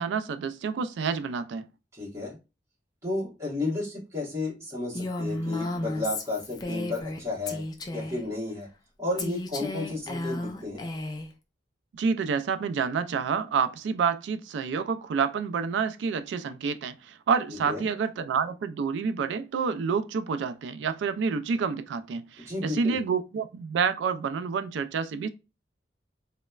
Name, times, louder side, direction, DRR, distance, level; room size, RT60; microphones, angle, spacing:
voice 1, 0.0-1.7 11.9-25.3, right 6 dB, 85° right, 0.3 m, -28 dB
voice 2, 1.9-2.4 3.0-7.6 7.9-8.7 9.0-10.9 17.7-17.9 22.4-23.0, left 2 dB, 15° right, 1.2 m, -32 dB
Female speech woman speaking, 4.9-7.2 7.5-8.2 9.2-11.3, left 2 dB, 25° left, 0.3 m, -33 dB
3.0 x 2.1 x 2.3 m
head